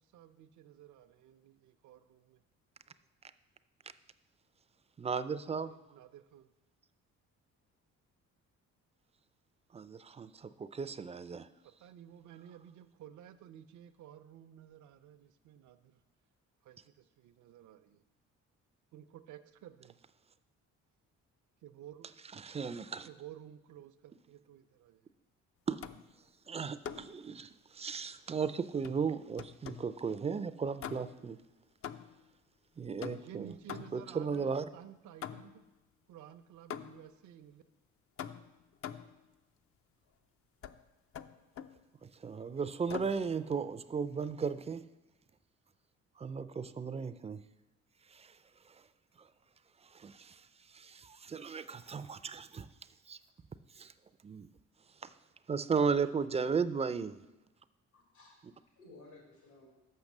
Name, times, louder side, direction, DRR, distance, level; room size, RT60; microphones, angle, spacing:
voice 1, 0.1-2.4 5.5-6.5 11.6-16.0 16.6-18.0 18.9-20.0 21.6-22.1 23.1-25.1 33.2-35.6 36.1-37.6, right 10 dB, 75° right, 0.6 m, -53 dB
voice 2, 5.0-5.7 9.7-11.5 22.3-23.1 25.7-25.8 26.5-31.4 32.8-33.5 33.9-34.7 42.0-44.9 46.2-47.4 48.1-48.4 48.7-48.8 49.2-49.3 49.9-50.4 50.7-52.7 53.1-53.2 53.8-53.9 54.2-54.5 55.0-55.1 55.5-57.2, right 5 dB, 20° right, 0.4 m, -35 dB
sound 1, 25.8-26.2 26.8-27.2 28.8-30.0 30.8-31.3 31.8-32.3 33.0-34.2 35.2-35.7 36.7-37.2 38.2-39.2 40.6-40.8 41.1-41.8 42.9-43.2, left 8 dB, 50° left, 0.5 m, -44 dB
voice 3, 57.9-59.7, left 2 dB, 90° left, 3.5 m, -57 dB
6.6 x 5.8 x 7.1 m
cardioid pair, 90°, 30 cm